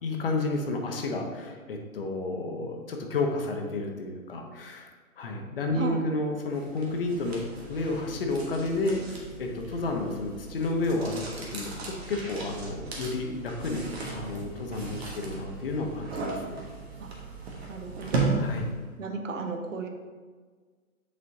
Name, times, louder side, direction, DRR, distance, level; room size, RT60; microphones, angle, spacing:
voice 1, 0.0-7.4 7.7-16.6 18.4-18.7, left 2 dB, 40° left, 2 dB, 0.9 m, -31 dB
sound 1, 6.5-18.9, right 3 dB, 45° right, 1.4 m, -36 dB
voice 2, 17.7-18.4 19.0-19.9, right 3 dB, 60° right, 5 dB, 0.9 m, -34 dB
8.3 x 4.3 x 2.7 m, 1.5 s
figure-of-eight pair, 135°, 43 cm